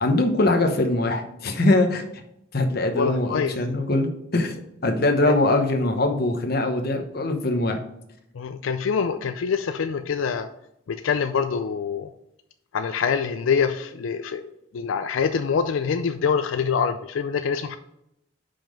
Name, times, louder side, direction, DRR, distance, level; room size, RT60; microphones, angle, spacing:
voice 1, 0.0-2.0 2.5-4.6 4.8-7.8, left 2 dB, 50° left, 5 dB, 0.9 m, -22 dB
voice 2, 3.0-3.5 8.3-10.5 10.9-12.1 12.7-17.8, left 6 dB, 85° left, 8 dB, 0.4 m, -25 dB
5.7 x 5.2 x 5.2 m, 0.81 s
head